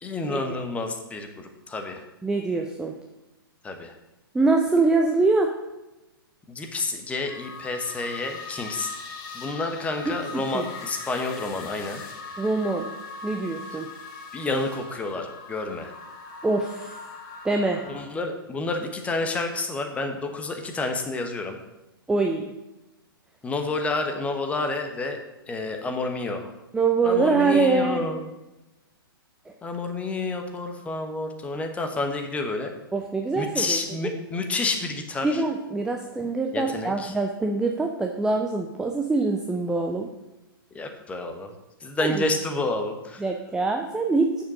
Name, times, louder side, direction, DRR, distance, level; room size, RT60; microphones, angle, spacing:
voice 1, 0.0-2.0 3.6-3.9 6.5-8.9 9.3-12.0 14.3-15.9 17.9-21.6 23.4-25.2 25.5-26.5 27.0-28.2 29.6-32.7 33.4-35.4 36.5-37.1 40.7-41.5 41.8-43.2, left 2 dB, 10° left, 5 dB, 1.1 m, -29 dB
voice 2, 2.2-2.9 4.3-5.5 10.3-10.6 12.4-12.9 13.2-13.9 16.4-17.0 17.4-17.9 22.1-22.5 26.7-28.0 29.5-29.6 32.9-33.8 35.2-40.1 42.0-42.2 43.2-44.4, right 3 dB, 5° right, 3 dB, 0.6 m, -24 dB
sound 1, 7.3-18.0, left 4 dB, 30° left, 1.7 m, -40 dB
8.6 x 6.9 x 6.2 m, 0.99 s
figure-of-eight pair, 110°, 12 cm